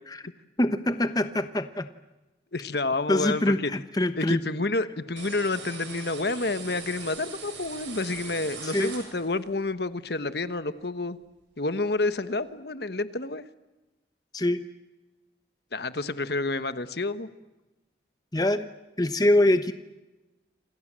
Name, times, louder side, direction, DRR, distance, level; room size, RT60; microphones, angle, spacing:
voice 1, 0.6-1.9 3.1-4.4 8.6-8.9 14.3-14.6 18.3-18.7 19.0-19.7, left 1 dB, 20° left, 10 dB, 1.0 m, -24 dB
voice 2, 2.5-3.7 4.2-11.2 11.6-13.4 15.7-17.3, left 3 dB, 60° left, 12 dB, 1.3 m, -29 dB
sound 1, 5.2-9.5, right 5 dB, 75° right, 7.6 m, -41 dB
28.0 x 27.5 x 7.6 m, 1.1 s
head